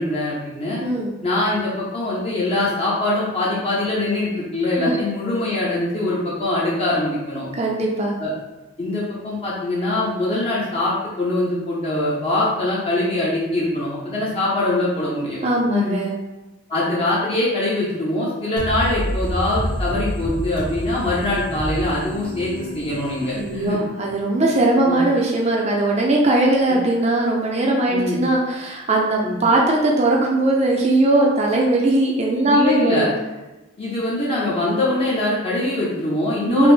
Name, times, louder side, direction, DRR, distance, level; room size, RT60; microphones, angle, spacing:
voice 1, 0.0-0.8 1.2-7.5 8.2-8.3 8.8-16.0 16.7-23.8 24.9-25.0 26.7-26.8 27.9-28.2 29.2-29.4 32.5-33.1 33.8-36.7, left 2 dB, 25° left, -7 dB, 0.6 m, -23 dB
voice 2, 0.8-1.1 4.8-5.0 7.5-8.2 15.4-16.1 23.4-33.1 36.4-36.7, right 2 dB, 30° right, -2 dB, 0.4 m, -19 dB
sound 1, 18.6-24.2, equal, 75° left, 1.1 m, -29 dB
4.9 x 2.0 x 3.1 m, 1.1 s
head